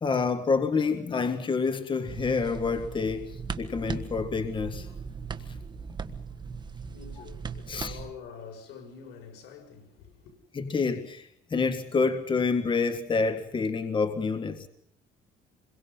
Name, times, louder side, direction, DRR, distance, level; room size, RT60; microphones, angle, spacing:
voice 1, 0.0-4.9 7.7-8.0 10.5-14.7, left 4 dB, 30° left, 1.7 m, -28 dB
sound 1, 2.1-8.1, right 5 dB, 25° right, 1.7 m, -38 dB
voice 2, 6.7-10.4, left 6 dB, 85° left, 6.4 m, -46 dB
27.5 x 23.0 x 5.6 m
cardioid pair, 110°, 17 cm